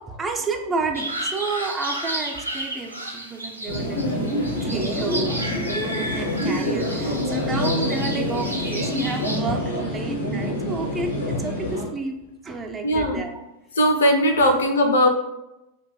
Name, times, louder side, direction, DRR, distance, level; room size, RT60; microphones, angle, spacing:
voice 1, 0.0-13.4, right 3 dB, 20° right, 3 dB, 0.3 m, -31 dB
sound 1, 0.9-9.4, right 1 dB, 90° right, 0.4 m, -32 dB
sound 2, 3.6-11.8, left 1 dB, 90° left, 0.7 m, -26 dB
voice 2, 12.8-13.2 13.8-15.1, equal, 65° left, 4 dB, 0.4 m, -19 dB
2.5 x 2.2 x 3.2 m, 0.93 s
figure-of-eight pair, 90°, 0 cm